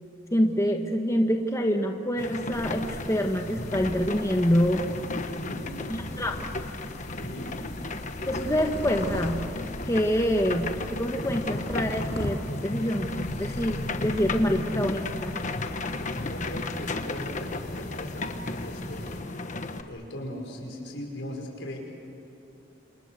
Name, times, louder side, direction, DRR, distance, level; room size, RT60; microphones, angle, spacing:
voice 1, 0.3-4.9 5.9-6.5 8.3-9.5 9.9-15.4, equal, 15° left, 3 dB, 1.2 m, -26 dB
sound 1, 2.2-19.8, left 2 dB, 40° left, 1.3 m, -34 dB
sound 2, 2.5-19.2, left 1 dB, 60° left, 2.7 m, -40 dB
voice 2, 5.3-5.7 7.1-7.6 16.2-21.8, left 1 dB, 75° left, 1 dB, 5.8 m, -39 dB
28.5 x 28.0 x 6.7 m, 2.9 s
head